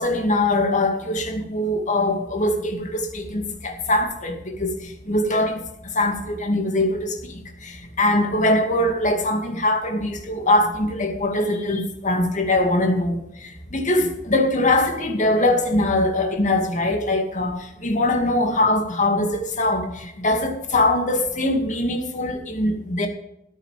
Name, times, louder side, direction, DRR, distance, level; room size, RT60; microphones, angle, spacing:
voice 1, 0.0-4.7 5.1-5.6 5.9-7.2 7.6-13.2 13.4-23.1, left 1 dB, 40° left, 4 dB, 2.4 m, -22 dB
13.5 x 9.7 x 5.0 m, 0.83 s
head